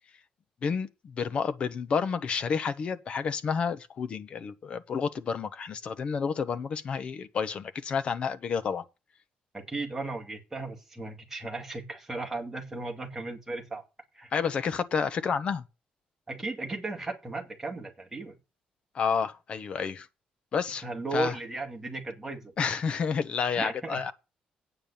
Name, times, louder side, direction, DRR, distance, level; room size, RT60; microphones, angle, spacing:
voice 1, 0.6-8.8 14.3-15.6 18.9-20.1 20.5-20.8 21.1-21.3 22.6-24.1, left 6 dB, 40° left, 0.9 m, -30 dB
voice 2, 9.5-13.8 14.1-14.3 16.3-18.3 20.8-22.5 23.5-24.0, right 2 dB, 10° right, 2.4 m, -35 dB
8.9 x 7.4 x 6.7 m
cardioid pair, 155°, 3 cm